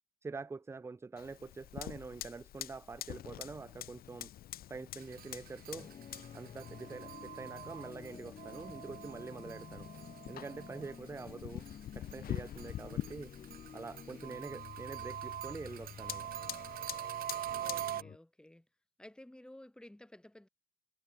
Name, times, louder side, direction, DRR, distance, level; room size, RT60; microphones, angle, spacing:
voice 1, 0.2-4.3 4.7-5.9 6.3-9.9 10.3-11.6 11.9-13.3 13.7-16.3, right 4 dB, 15° right, 0.6 m, -45 dB
Fire, 1.2-18.0, left 12 dB, 60° left, 1.8 m, -47 dB
sound 1, 5.0-11.2 11.6-18.0, right 12 dB, 60° right, 1.1 m, -44 dB
sound 2, 5.7-18.2, left 7 dB, 40° left, 2.8 m, -52 dB
voice 2, 17.4-18.7 19.0-20.5, left 1 dB, 5° left, 3.7 m, -54 dB
cardioid pair, 110°, 17 cm